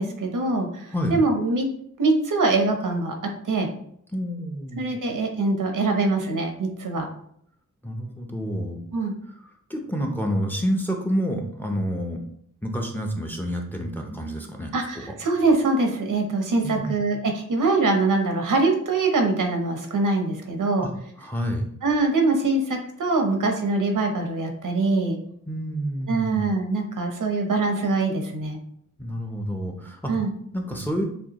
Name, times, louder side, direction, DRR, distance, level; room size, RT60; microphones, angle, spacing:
voice 1, 0.0-1.7 2.0-3.7 4.8-7.1 8.9-9.1 14.7-20.9 21.8-25.2 26.1-28.6 30.1-30.3, right 3 dB, 80° right, 4 dB, 0.9 m, -23 dB
voice 2, 4.1-4.9 7.0-7.1 7.8-8.8 9.7-12.2 12.6-15.0 16.6-17.1 20.8-20.9 21.2-21.7 25.5-26.4 29.0-30.1 30.5-31.0, equal, 5° left, 2 dB, 0.6 m, -28 dB
6.3 x 2.3 x 2.9 m, 0.67 s
wide cardioid pair, 115°, 31 cm